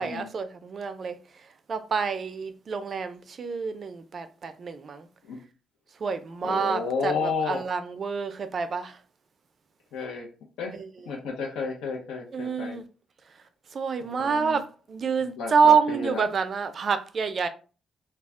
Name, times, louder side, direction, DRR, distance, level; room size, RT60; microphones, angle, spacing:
voice 1, 0.0-5.1 6.0-9.0 10.7-10.9 12.3-12.8 13.7-17.5, right 5 dB, 45° right, 0.4 m, -27 dB
voice 2, 6.4-7.6 9.9-10.3 10.6-10.8 11.1-12.8 14.0-14.6 15.2-16.2, left 5 dB, 85° left, 0.6 m, -32 dB
2.2 x 2.1 x 3.6 m
cardioid pair, 90°, 0 cm